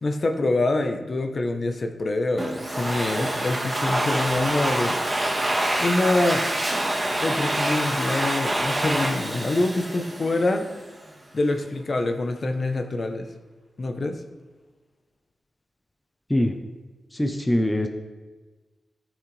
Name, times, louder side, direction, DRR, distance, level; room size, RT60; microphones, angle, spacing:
voice 1, 0.0-5.0 5.8-6.5 7.2-10.7 11.3-13.3 13.8-14.2, left 2 dB, 40° left, 6 dB, 0.8 m, -25 dB
Domestic sounds home sounds, 2.4-10.8, right 1 dB, 15° right, 1.4 m, -26 dB
voice 2, 17.2-17.9, left 1 dB, 10° left, 6 dB, 0.7 m, -22 dB
14.0 x 6.3 x 3.3 m, 1.3 s
wide cardioid pair, 105°, 0 cm